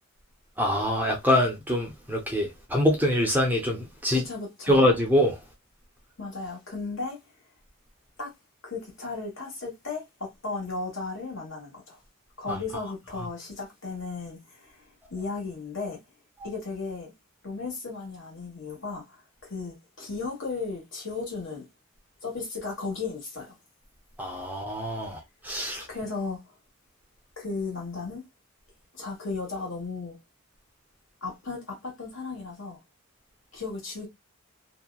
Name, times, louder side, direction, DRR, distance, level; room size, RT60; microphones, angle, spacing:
voice 1, 0.6-4.2 4.7-5.4 12.5-12.6 24.2-25.9, left 1 dB, 10° right, 0.5 m, -24 dB
voice 2, 4.1-4.8 6.2-7.2 8.2-8.3 8.6-12.0 12.4-14.8 15.1-16.0 16.4-17.1 17.4-21.6 22.2-23.5 25.9-26.4 27.4-28.2 28.9-30.2 31.2-32.8 33.5-34.1, left 4 dB, 60° left, 1.3 m, -35 dB
2.8 x 2.2 x 2.2 m
head